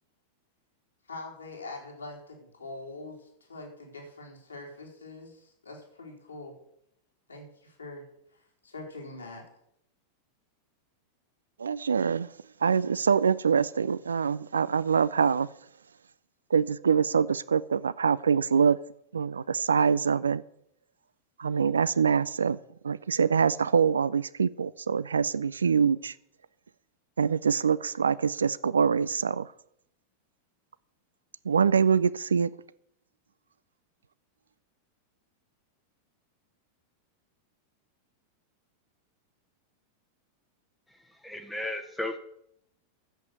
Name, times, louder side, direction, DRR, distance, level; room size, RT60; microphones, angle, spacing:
voice 1, 1.1-6.5 7.3-8.0 8.3-9.5, left 2 dB, 75° left, 0 dB, 4.0 m, -43 dB
voice 2, 11.6-12.3 12.6-15.5 16.5-18.8 19.1-20.4 21.4-22.6 22.8-26.1 27.2-29.5 31.5-32.5, right 6 dB, 70° right, 19 dB, 0.4 m, -24 dB
voice 3, 41.2-42.2, left 1 dB, 5° left, 5 dB, 1.0 m, -34 dB
11.5 x 7.9 x 8.2 m, 0.73 s
figure-of-eight pair, 90°, 0 cm